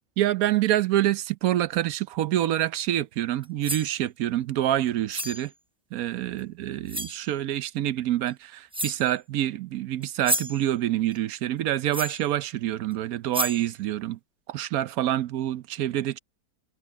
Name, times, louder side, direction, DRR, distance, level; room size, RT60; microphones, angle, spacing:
voice 1, 0.2-5.5 5.9-14.2 14.5-16.2, right 13 dB, 85° right, 1.1 m, -26 dB
sound 1, 3.4-3.9 5.1-5.5 6.4-6.5 6.9-7.2 8.3-8.4 8.7-9.1 10.0-10.6 11.9-12.2 12.9-13.0 13.3-13.7, right 1 dB, 5° right, 0.7 m, -30 dB
omnidirectional pair, 1.5 m